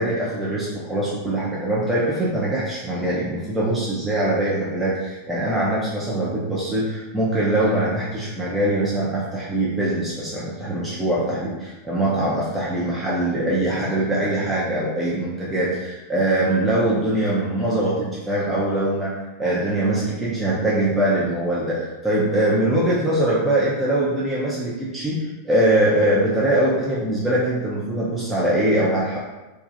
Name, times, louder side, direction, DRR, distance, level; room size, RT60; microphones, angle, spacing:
voice 1, 0.0-29.2, right 1 dB, 10° right, -7 dB, 0.4 m, -22 dB
2.2 x 2.1 x 2.7 m, 1.1 s
figure-of-eight pair, 90°, 0 cm